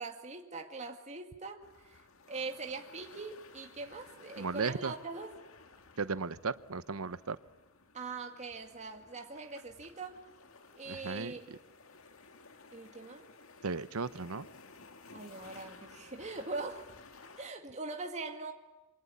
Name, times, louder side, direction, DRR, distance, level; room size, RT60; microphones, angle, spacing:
voice 1, 0.0-2.0 2.3-5.3 7.9-10.2 10.8-11.5 12.7-13.2 15.1-16.8 17.4-18.5, right 3 dB, 35° right, 3 dB, 2.2 m, -42 dB
sound 1, 1.6-17.5, left 4 dB, 70° left, 2.1 m, -56 dB
voice 2, 4.4-4.9 6.0-7.4 10.9-11.6 13.6-14.5, right 4 dB, 90° right, 15 dB, 0.9 m, -36 dB
27.5 x 24.5 x 8.7 m, 1.1 s
head